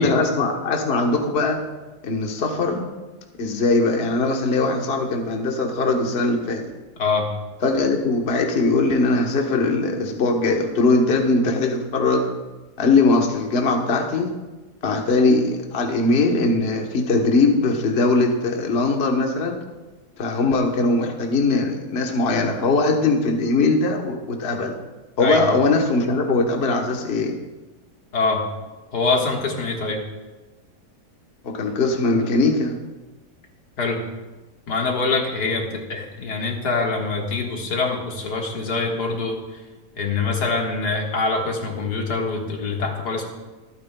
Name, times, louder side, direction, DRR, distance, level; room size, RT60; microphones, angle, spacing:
voice 1, 0.0-1.6 2.0-2.9 3.4-6.6 7.6-12.3 12.8-14.3 14.8-19.6 20.2-24.7 25.2-27.4 31.4-32.8, left 3 dB, 45° left, 2 dB, 1.2 m, -20 dB
voice 2, 7.0-7.3 25.2-25.4 28.1-28.5 28.9-30.0 33.8-34.0 34.7-39.6 40.0-43.3, left 3 dB, 85° left, 0 dB, 2.2 m, -24 dB
24.5 x 9.1 x 2.3 m, 1.2 s
omnidirectional pair, 1.7 m